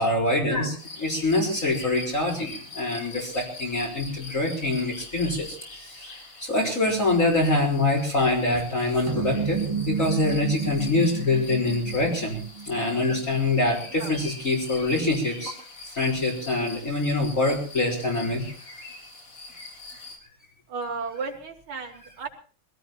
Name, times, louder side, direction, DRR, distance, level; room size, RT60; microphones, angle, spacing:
voice 1, 0.0-6.1 6.4-12.4 12.7-15.5 16.0-18.4, left 2 dB, 35° left, -2 dB, 4.5 m, -25 dB
sound 1, 0.8-20.2, left 3 dB, 80° left, 5.2 m, -43 dB
sound 2, 9.1-13.7, right 6 dB, 40° right, 0.4 m, -32 dB
voice 2, 20.7-22.3, right 4 dB, 70° right, 3 dB, 3.7 m, -33 dB
25.0 x 17.5 x 2.9 m, 0.41 s
omnidirectional pair, 2.4 m